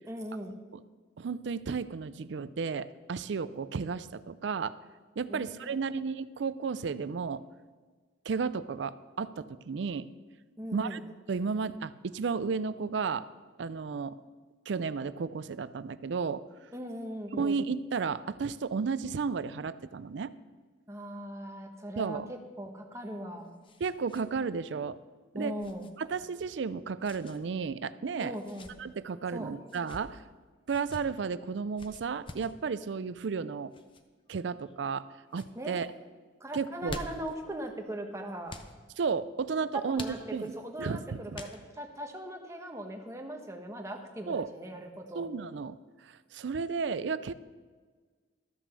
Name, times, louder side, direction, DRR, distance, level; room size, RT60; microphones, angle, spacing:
voice 1, 0.1-0.5 5.3-5.8 10.6-11.0 16.7-17.5 20.9-23.6 25.3-25.9 28.2-28.7 29.3-29.5 35.5-35.9 36.4-38.6 39.9-45.3, right 1 dB, 15° right, 3 dB, 1.1 m, -40 dB
voice 2, 1.2-4.8 5.2-7.4 8.3-10.1 10.7-11.0 11.3-13.2 13.6-14.2 14.7-16.4 17.3-20.3 22.0-22.3 23.8-25.0 25.3-25.5 26.0-28.4 28.8-30.2 30.7-33.7 34.3-35.1 35.3-35.9 36.5-37.0 39.0-40.5 40.8-41.4 44.3-44.5 45.1-45.8 46.0-47.3, right 5 dB, 70° right, 15 dB, 0.4 m, -33 dB
sound 1, 22.9-24.3 24.6-24.7 25.6-25.9 27.0-27.4 28.3-28.7 29.6-30.0 30.7-31.0 31.8-32.5 33.7-34.0 34.7-35.0 35.3-35.5 36.6-37.4 38.5-38.7 39.9-40.6 41.3-41.9, left 2 dB, 25° left, 0.7 m, -46 dB
13.0 x 6.0 x 6.8 m, 1.4 s
head